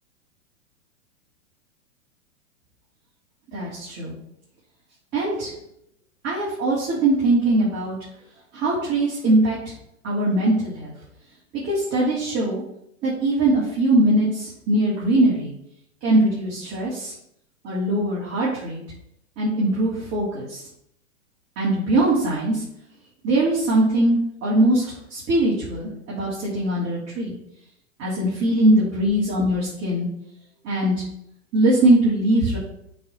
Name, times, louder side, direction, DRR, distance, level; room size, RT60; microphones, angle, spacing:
voice 1, 3.5-4.1 5.1-5.5 6.2-7.9 8.5-9.6 10.0-10.9 11.5-12.6 13.0-15.5 16.0-17.1 17.6-18.8 19.4-20.6 21.5-22.6 23.2-27.3 28.0-30.1 30.6-31.0 31.5-32.6, right 1 dB, 35° right, -7 dB, 3.4 m, -21 dB
8.4 x 4.2 x 5.9 m, 0.75 s
hypercardioid pair, 115°, 40 cm